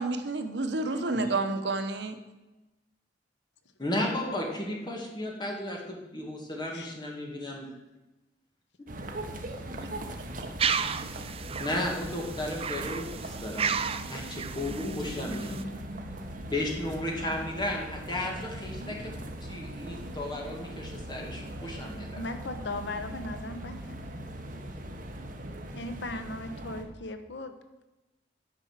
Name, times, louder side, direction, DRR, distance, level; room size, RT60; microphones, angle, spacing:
voice 1, 0.0-2.2 9.8-9.9, right 3 dB, 75° right, 7 dB, 1.0 m, -30 dB
voice 2, 0.9-1.3 6.7-6.9 14.8-15.8 22.1-24.5 25.7-27.5, left 1 dB, 80° left, 8 dB, 0.9 m, -38 dB
voice 3, 3.8-7.7 10.9-11.0 11.4-13.7 14.1-22.2, left 1 dB, 25° left, 0 dB, 2.2 m, -34 dB
sound 1, 8.9-26.8, right 1 dB, 50° right, 1.3 m, -40 dB
sound 2, 10.6-15.6, right 6 dB, 35° right, 0.5 m, -33 dB
9.7 x 5.8 x 7.4 m, 1.0 s
head